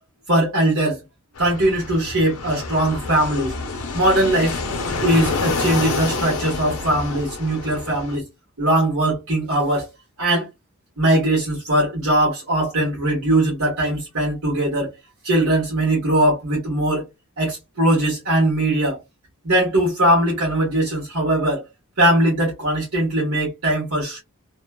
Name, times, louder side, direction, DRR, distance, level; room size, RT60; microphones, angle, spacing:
voice 1, 0.3-1.0 1.4-3.5 3.9-4.6 5.0-8.2 8.6-9.9 10.2-10.5 11.0-14.9 15.2-17.0 17.4-19.0 19.4-21.6 22.0-24.2, right 1 dB, 75° right, 1.3 m, -20 dB
Fixed-wing aircraft airplane, 1.3-8.2, left 3 dB, 75° left, 0.7 m, -28 dB
2.9 x 2.1 x 2.2 m
head